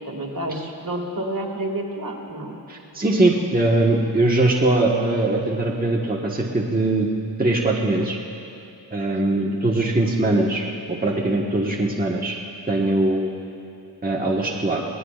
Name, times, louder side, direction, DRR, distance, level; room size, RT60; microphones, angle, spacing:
voice 1, 0.1-2.6 9.3-9.5, right 1 dB, 50° right, 1 dB, 2.1 m, -29 dB
voice 2, 2.7-7.1 7.4-8.2 8.9-12.3 12.7-13.3 14.0-14.8, right 2 dB, 20° right, -3 dB, 1.3 m, -21 dB
22.5 x 18.5 x 2.4 m, 2.9 s
wide cardioid pair, 55°, 43 cm